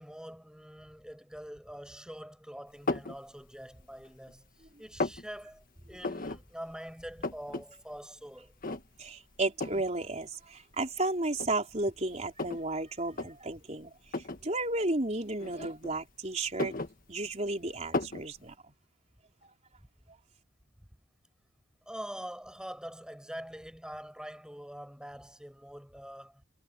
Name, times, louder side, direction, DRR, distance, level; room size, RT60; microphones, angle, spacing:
voice 1, 0.0-4.4 4.8-8.5 21.9-26.4, equal, 5° right, 7.1 m, -44 dB
sound 1, 2.9-3.2 3.7-4.4 4.7-5.2 6.0-6.4 6.7-6.8 7.0-7.6 8.0-8.1 8.6-9.1 9.6-9.9 10.7-10.8 11.3-12.7 13.1-13.3 14.1-14.4 15.4-16.1 16.4-17.5 17.9-18.3, left 2 dB, 45° left, 1.7 m, -34 dB
voice 2, 9.0-13.9 14.4-16.7 17.1-18.5, right 2 dB, 35° right, 4.4 m, -33 dB
head